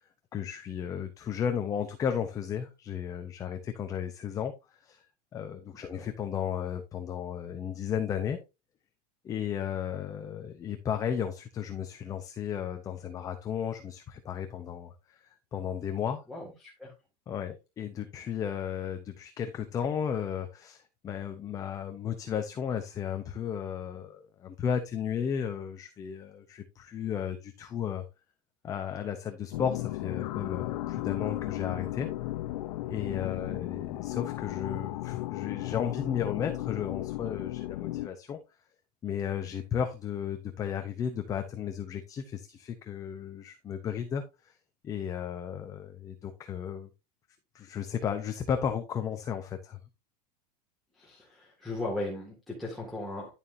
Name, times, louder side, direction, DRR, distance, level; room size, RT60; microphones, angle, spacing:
voice 1, 0.3-5.0 5.3-8.4 9.2-16.2 17.3-28.0 28.6-32.1 32.9-38.4 39.0-44.5 44.8-46.9 47.5-49.8, left 8 dB, 15° left, 0.7 m, -34 dB
voice 2, 16.3-16.9 33.2-33.6 51.0-53.3, left 2 dB, ahead, 2.0 m, -38 dB
sound 1, 29.5-38.1, left 17 dB, 75° left, 0.7 m, -35 dB
11.0 x 7.0 x 2.7 m
supercardioid pair, 175°, 20 cm